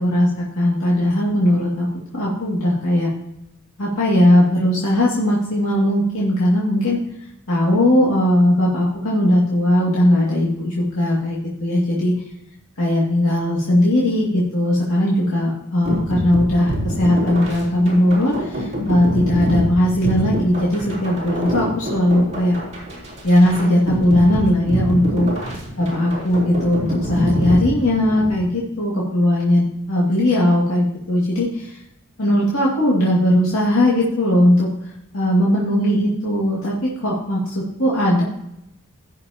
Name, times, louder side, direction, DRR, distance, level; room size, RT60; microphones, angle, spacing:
voice 1, 0.0-1.9 2.1-3.1 3.8-7.0 7.5-12.2 12.8-22.6 23.2-25.3 25.8-31.8 32.2-34.7 35.1-38.2, left 1 dB, 70° left, -6 dB, 2.4 m, -18 dB
sound 1, 15.9-28.4, equal, 30° right, 3.7 m, -26 dB
16.5 x 6.3 x 2.9 m, 0.84 s
head